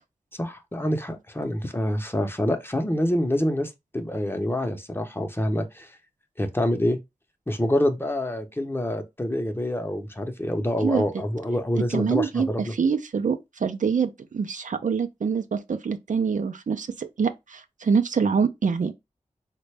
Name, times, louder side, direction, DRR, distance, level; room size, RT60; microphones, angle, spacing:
voice 1, 0.4-5.9 6.4-7.0 7.5-12.7, left 1 dB, 15° left, 0.7 m, -26 dB
voice 2, 11.9-18.9, right 6 dB, 65° right, 0.5 m, -25 dB
3.9 x 2.2 x 3.3 m
cardioid pair, 45°, 14 cm